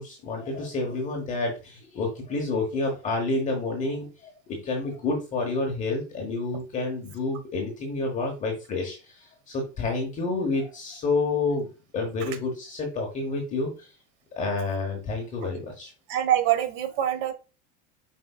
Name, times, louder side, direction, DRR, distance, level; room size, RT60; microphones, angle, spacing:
voice 1, 0.0-11.7 11.9-13.9 14.4-15.9, left 3 dB, 20° left, 1 dB, 1.1 m, -29 dB
voice 2, 16.1-17.3, right 11 dB, 50° right, 9 dB, 1.4 m, -24 dB
7.5 x 5.4 x 2.4 m, 0.32 s
cardioid pair, 170°, 35 cm